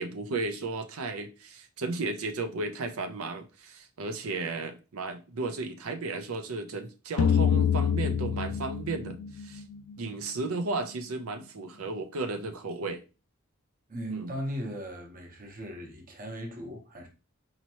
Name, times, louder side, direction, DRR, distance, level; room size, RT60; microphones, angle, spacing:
voice 1, 0.0-9.6 10.0-13.0 14.1-14.3, right 3 dB, 85° right, 0.6 m, -34 dB
sound 1, 7.2-10.1, left 8 dB, 75° left, 0.3 m, -26 dB
voice 2, 13.9-17.1, equal, 40° right, 0.9 m, -38 dB
4.3 x 2.9 x 2.9 m
head